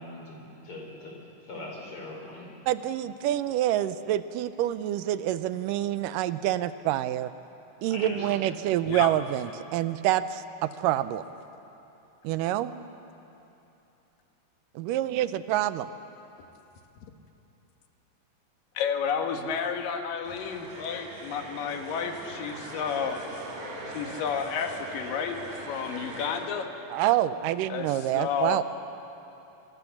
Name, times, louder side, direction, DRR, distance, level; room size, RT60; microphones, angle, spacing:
voice 1, 0.0-2.5 7.9-8.8, left 2 dB, 40° left, -1 dB, 5.4 m, -41 dB
voice 2, 2.7-7.3 7.8-11.2 12.2-12.9 14.8-15.9 26.9-28.6, right 13 dB, 85° right, 13 dB, 2.3 m, -27 dB
voice 3, 18.8-23.2 23.9-25.4 25.7-26.7 27.7-27.9 28.1-28.6, left 7 dB, 90° left, 5 dB, 3.1 m, -31 dB
sound 1, 20.2-26.4, right 1 dB, 65° right, 4.6 m, -40 dB
25.0 x 23.0 x 7.1 m, 2.9 s
omnidirectional pair, 3.8 m